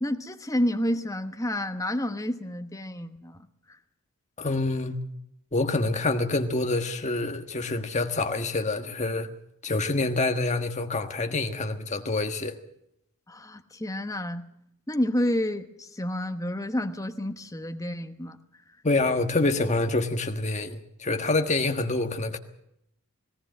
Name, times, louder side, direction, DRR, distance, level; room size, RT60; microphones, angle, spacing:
voice 1, 0.0-3.8 13.3-14.5 14.9-18.4, left 1 dB, 15° left, 7 dB, 1.1 m, -30 dB
voice 2, 4.4-5.0 5.5-9.3 9.6-12.6 18.8-22.4, left 2 dB, 30° left, 7 dB, 1.5 m, -26 dB
19.0 x 18.0 x 7.7 m, 0.78 s
head